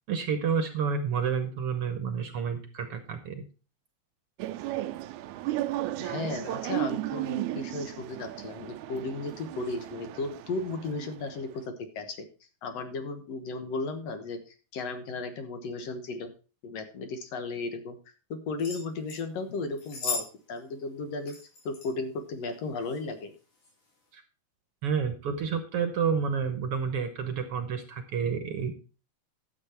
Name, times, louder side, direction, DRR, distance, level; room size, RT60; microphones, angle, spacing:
voice 1, 0.1-3.4 24.1-24.2 24.8-28.7, right 6 dB, 60° right, 8 dB, 1.7 m, -29 dB
sound 1, 4.4-11.5, right 15 dB, 85° right, 2.0 m, -35 dB
voice 2, 6.0-12.3 12.6-16.3 16.6-18.0 18.3-21.4 21.7-23.3, left 3 dB, 65° left, 8 dB, 2.2 m, -35 dB
sound 2, 18.6-19.2 19.8-20.3 20.6-20.7 21.3-21.9 22.7-23.0 23.6-23.7, left 4 dB, 90° left, 5.6 m, -36 dB
12.0 x 7.4 x 4.4 m, 0.34 s
omnidirectional pair, 3.4 m